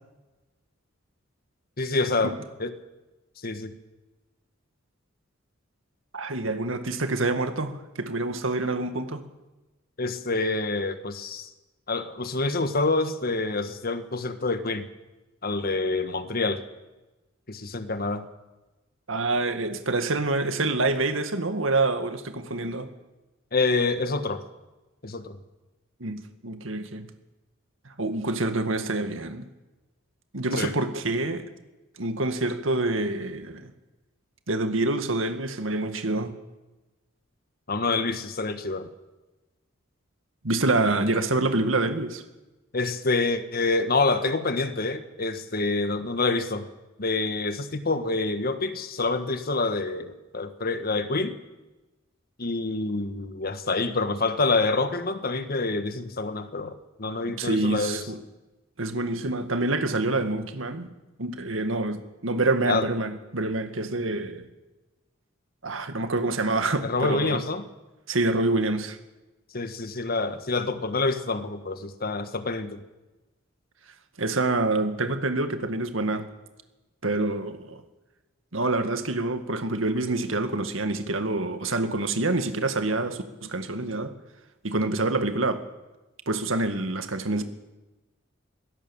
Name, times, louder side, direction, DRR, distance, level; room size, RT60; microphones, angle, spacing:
voice 1, 1.8-2.3 2.6-2.7 3.4-3.7 10.0-11.5 11.9-14.9 15.4-16.6 17.5-18.3 23.5-24.4 25.0-25.4 30.6-30.7 37.7-38.9 42.7-46.7 47.0-51.3 52.4-58.0 62.7-62.9 66.8-67.6 69.5-72.8, left 3 dB, 50° left, 9 dB, 1.5 m, -27 dB
voice 2, 6.1-9.2 19.1-22.9 26.0-27.1 27.9-29.5 30.3-31.5 32.0-33.7 34.5-36.3 40.4-42.2 57.3-58.2 58.8-60.9 61.2-64.5 65.6-67.4 68.1-69.0 74.2-76.3 77.0-77.8 78.5-84.1 84.6-85.6 86.3-87.4, right 2 dB, 90° right, 8 dB, 2.0 m, -27 dB
22.5 x 17.0 x 7.3 m, 1.1 s
head